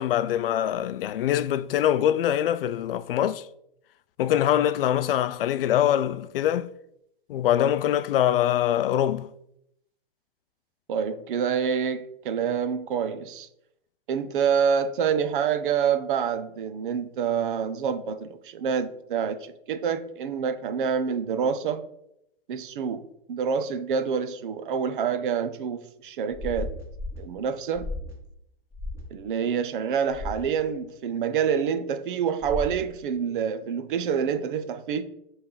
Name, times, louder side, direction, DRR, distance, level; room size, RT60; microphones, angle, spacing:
voice 1, 0.0-3.4 4.2-6.7 7.3-9.3, left 11 dB, 65° left, 0.5 m, -23 dB
voice 2, 10.9-13.5 14.1-21.8 22.5-23.0 23.3-26.8 27.2-27.9 29.1-35.0, right 7 dB, 55° right, 0.8 m, -27 dB
sound 1, 26.3-27.2 27.7-28.1 28.7-29.0 30.1-30.4 32.4-32.8, left 2 dB, 10° right, 1.9 m, -34 dB
7.0 x 3.5 x 5.5 m
supercardioid pair, 165°, 31 cm